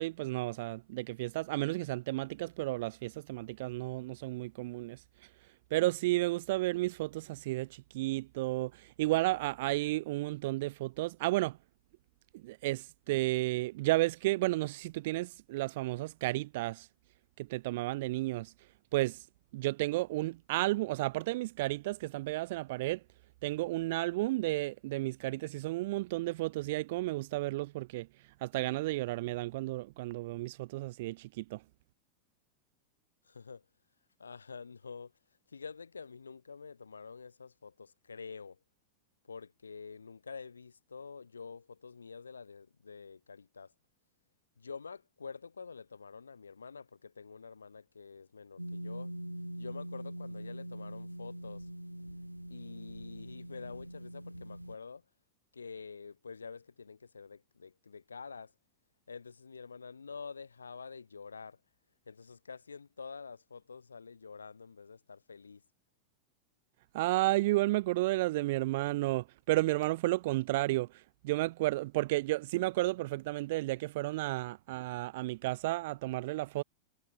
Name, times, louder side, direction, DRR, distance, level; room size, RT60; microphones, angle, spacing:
voice 1, 0.0-5.0 5.7-11.6 12.3-16.9 17.4-18.5 18.9-19.2 19.5-23.0 23.4-28.1 28.4-31.6 66.9-70.9 71.2-76.6, right 19 dB, 50° right, 0.6 m, -32 dB
voice 2, 33.2-33.6 34.2-35.1 35.5-38.6 39.2-43.7 44.6-49.1 49.6-51.7 52.5-55.0 55.5-58.5 59.1-61.6 62.1-65.6, left 5 dB, 75° left, 3.4 m, -47 dB
sound 1, 48.6-54.8, right 1 dB, 90° right, 2.2 m, -43 dB
figure-of-eight pair, 90°, 0 cm